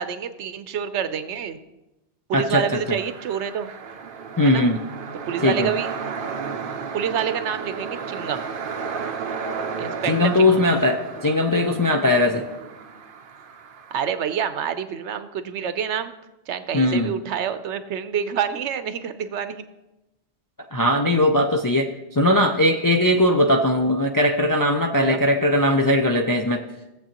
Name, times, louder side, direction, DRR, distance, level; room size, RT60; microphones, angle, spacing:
voice 1, 0.0-1.6 2.3-3.7 4.4-4.6 5.3-5.9 6.9-8.4 9.8-10.6 13.9-16.1 16.5-19.6 24.9-25.2, right 8 dB, 80° right, 11 dB, 1.0 m, -27 dB
voice 2, 2.3-3.0 4.4-4.9 5.4-5.7 10.1-12.5 16.7-17.1 20.7-26.6, left 1 dB, 30° left, 2 dB, 0.3 m, -20 dB
sound 1, 2.7-14.1, right 5 dB, 55° right, 0.7 m, -33 dB
16.5 x 7.5 x 2.9 m, 0.97 s
omnidirectional pair, 1.2 m